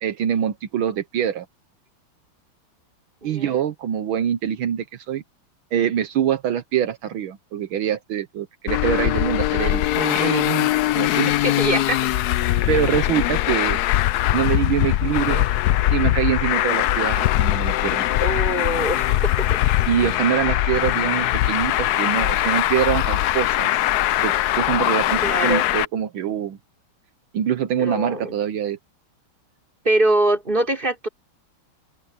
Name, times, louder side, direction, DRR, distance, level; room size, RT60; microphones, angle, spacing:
voice 1, 0.0-1.5 3.2-5.2 5.7-10.7 10.9-11.3 12.7-13.8 14.3-15.5 15.9-18.1 19.9-23.7 24.2-26.6 27.3-28.8, right 9 dB, 75° right, 1.8 m, -24 dB
voice 2, 3.2-3.6 11.3-12.1 18.2-19.6 25.2-25.7 27.8-28.4 29.8-31.1, right 1 dB, 25° right, 4.3 m, -23 dB
Traffic noise roadway noise, 8.7-25.8, left 14 dB, 80° left, 0.9 m, -21 dB
omnidirectional pair, 2.3 m